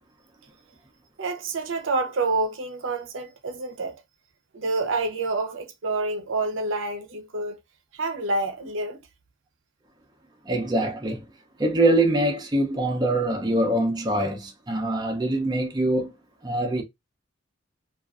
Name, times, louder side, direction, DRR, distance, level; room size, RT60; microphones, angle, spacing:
voice 1, 1.2-4.0 4.5-7.6 7.9-9.0, right 3 dB, 70° right, 0.6 m, -28 dB
voice 2, 10.5-11.2 11.6-16.1 16.4-16.8, right 1 dB, 20° right, 0.5 m, -24 dB
2.4 x 2.3 x 2.3 m
head